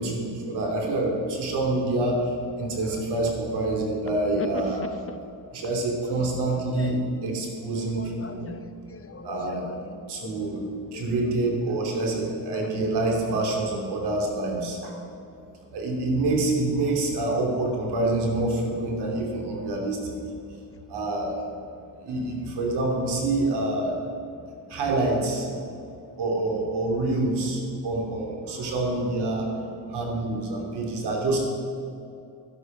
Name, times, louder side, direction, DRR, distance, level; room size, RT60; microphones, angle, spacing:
voice 1, 0.0-2.2 2.6-4.8 5.5-8.5 9.2-9.6 10.1-10.6 10.9-14.9 15.7-20.2 20.9-21.4 22.0-24.0 24.7-25.5 26.2-29.5 29.9-31.4, right 2 dB, 80° right, 1 dB, 3.1 m, -26 dB
voice 2, 2.8-3.4 4.4-5.2 5.6-5.7 6.0-7.1 7.7-11.3 11.7-11.8, left 4 dB, 35° left, 8 dB, 0.9 m, -40 dB
12.0 x 11.5 x 5.5 m, 2.5 s
cardioid pair, 95°, 40 cm